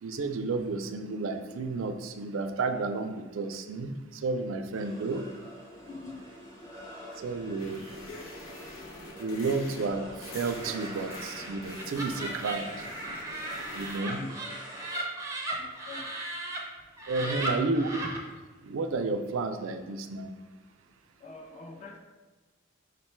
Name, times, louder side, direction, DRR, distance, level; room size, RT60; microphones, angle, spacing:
voice 1, 0.0-5.2 7.2-8.0 9.2-12.9 13.7-14.2 17.1-17.9 18.6-20.3, right 3 dB, 70° right, 7 dB, 0.4 m, -32 dB
sound 1, 4.7-15.0, equal, 15° left, 1.0 m, -47 dB
voice 2, 5.8-6.2 14.1-14.4 15.5-16.1 17.2-17.7 21.2-22.0, left 3 dB, 35° left, 3 dB, 0.4 m, -44 dB
sound 2, 7.6-14.0, left 2 dB, 85° left, 0.7 m, -45 dB
Laughter, 10.4-16.6 17.0-18.2, right 1 dB, 15° right, 0.5 m, -37 dB
5.1 x 2.2 x 4.3 m, 1.3 s
head